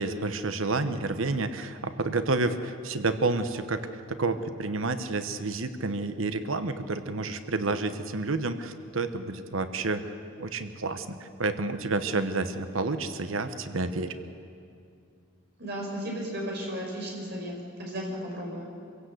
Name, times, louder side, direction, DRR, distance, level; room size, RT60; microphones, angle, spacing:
voice 1, 0.0-14.1, right 3 dB, 75° right, 10 dB, 1.1 m, -30 dB
voice 2, 15.6-18.6, equal, 50° right, -1 dB, 5.7 m, -34 dB
26.0 x 16.5 x 8.1 m, 2.5 s
head